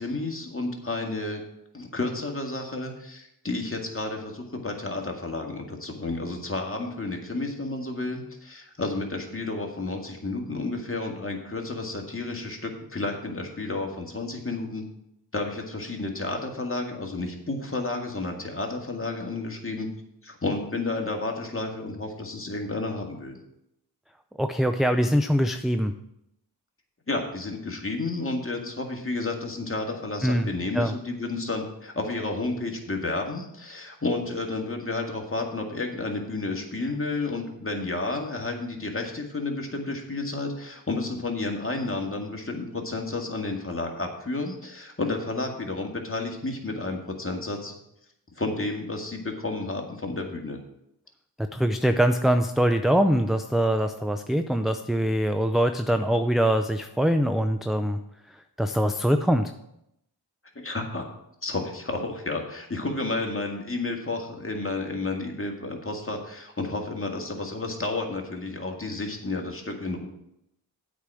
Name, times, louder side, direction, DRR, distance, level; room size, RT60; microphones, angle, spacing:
voice 1, 0.0-1.4 1.7-14.9 15.3-19.9 20.2-23.4 27.1-47.7 48.4-50.6 60.6-61.0 61.4-70.1, left 2 dB, 30° left, 2 dB, 2.0 m, -31 dB
voice 2, 24.4-25.9 30.2-30.5 30.7-30.9 51.5-58.0 58.6-59.5, equal, ahead, 8 dB, 0.5 m, -23 dB
8.3 x 5.0 x 7.5 m, 0.79 s
cardioid pair, 45°, 42 cm